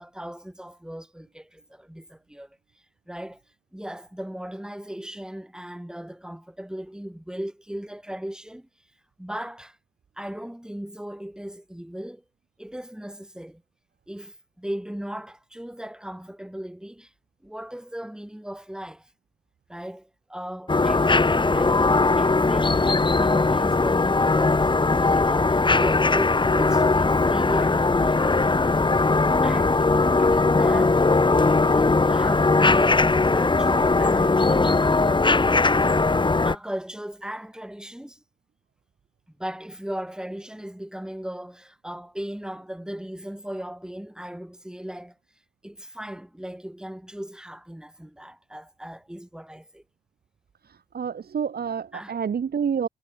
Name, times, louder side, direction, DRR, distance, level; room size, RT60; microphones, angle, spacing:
voice 1, 0.0-2.5 3.1-3.4 3.7-8.7 9.2-9.8 10.2-12.2 12.6-13.6 14.1-17.1 17.4-19.1 19.7-28.6 29.4-34.9 36.2-38.2 39.4-45.1 45.6-49.8 51.9-52.1, equal, 5° right, 4.6 m, -37 dB
sound 1, 20.7-36.6, left 3 dB, 30° left, 2.9 m, -20 dB
voice 2, 50.9-52.9, right 7 dB, 75° right, 4.8 m, -28 dB
wide cardioid pair, 95°, 16 cm